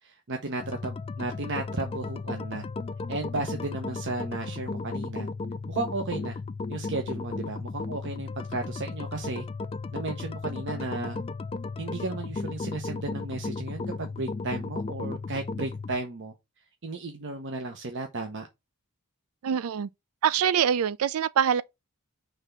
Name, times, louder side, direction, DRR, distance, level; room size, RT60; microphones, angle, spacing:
voice 1, 0.0-2.6 3.1-5.3 5.7-6.4 6.7-9.5 9.9-11.2 11.8-16.3 16.8-18.5, right 2 dB, 55° right, 0.9 m, -34 dB
sound 1, 0.6-16.0, left 3 dB, 25° left, 0.3 m, -35 dB
voice 2, 19.4-19.9 20.2-21.6, right 8 dB, 75° right, 0.4 m, -24 dB
5.8 x 3.4 x 5.6 m
head